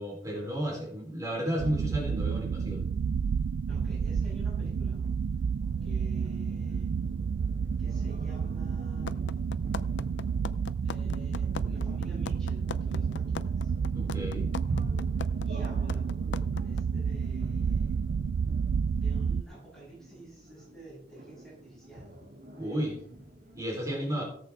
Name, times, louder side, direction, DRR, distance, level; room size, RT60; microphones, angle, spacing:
voice 1, 0.0-2.8 13.9-14.5 22.6-23.0 23.5-24.2, equal, 20° right, -3 dB, 3.8 m, -32 dB
sound 1, 1.6-19.4, right 6 dB, 80° right, 0.3 m, -30 dB
voice 2, 3.7-5.1 5.8-6.9 7.8-9.3 10.8-13.7 15.3-16.2 16.6-18.0 18.9-22.1 23.8-24.2, right 1 dB, 5° left, -7 dB, 6.3 m, -51 dB
sound 2, 5.3-23.6, right 1 dB, 55° right, 2.1 m, -48 dB
sound 3, 9.1-16.8, left 5 dB, 85° left, 0.5 m, -37 dB
17.5 x 8.2 x 3.6 m, 0.64 s
head